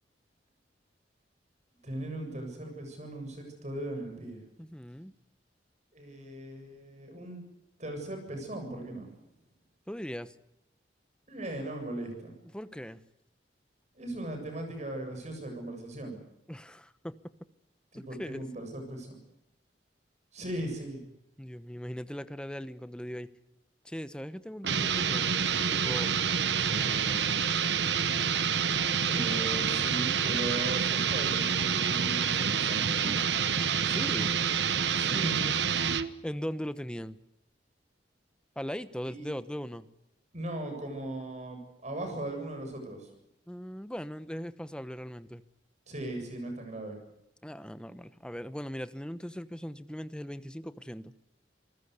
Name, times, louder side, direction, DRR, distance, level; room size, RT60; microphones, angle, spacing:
voice 1, 1.8-4.4 5.9-7.4 7.8-9.1 11.3-12.3 13.9-16.2 17.9-19.2 20.3-21.0 29.0-33.6 34.9-35.5 39.1-39.3 40.3-43.1 45.9-47.0, right 1 dB, 40° right, 5 dB, 7.6 m, -38 dB
voice 2, 4.6-5.1 9.9-10.3 12.5-13.0 16.5-17.1 17.9-18.4 21.4-23.3 23.8-25.4 25.7-26.1 26.6-27.2 33.9-34.3 36.2-37.2 38.6-39.8 43.5-45.4 47.4-51.1, equal, 5° left, 13 dB, 1.0 m, -39 dB
sound 1, 24.6-36.1, right 7 dB, 75° right, 1.1 m, -28 dB
27.5 x 19.0 x 8.2 m, 0.83 s
head